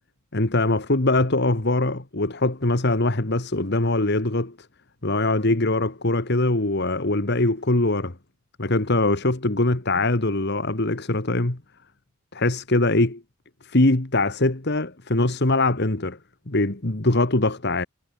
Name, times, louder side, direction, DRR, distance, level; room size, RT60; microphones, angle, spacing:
voice 1, 0.3-4.6 5.0-8.2 8.6-11.6 12.3-13.2 13.7-16.2 16.5-17.9, left 2 dB, 50° left, 1.8 m, -22 dB
head